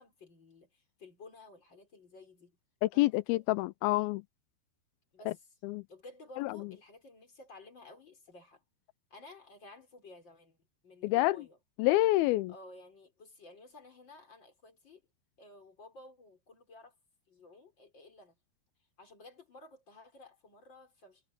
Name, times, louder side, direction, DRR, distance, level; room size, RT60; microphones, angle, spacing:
voice 1, 0.0-2.6 2.9-3.4 5.1-5.5 5.9-8.6 9.1-10.6 10.8-11.6 12.5-15.0 15.4-16.9 17.3-18.4 19.0-21.2, left 2 dB, 25° left, 5.6 m, -54 dB
voice 2, 2.8-4.2 5.3-5.4 5.6-5.8 6.4-6.6 11.0-11.4 11.8-12.5, left 19 dB, 85° left, 2.1 m, -27 dB
omnidirectional pair, 4.9 m